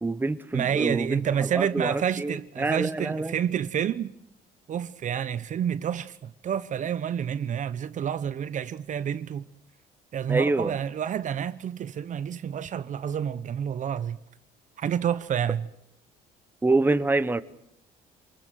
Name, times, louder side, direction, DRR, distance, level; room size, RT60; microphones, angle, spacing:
voice 1, 0.0-1.2 1.5-3.3 10.3-10.7 16.6-17.4, right 3 dB, 10° right, 1.1 m, -26 dB
voice 2, 0.5-4.1 4.7-9.5 10.1-14.2 14.8-15.7, right 8 dB, 45° right, 0.9 m, -29 dB
28.0 x 21.0 x 7.8 m
cardioid pair, 110°, 17 cm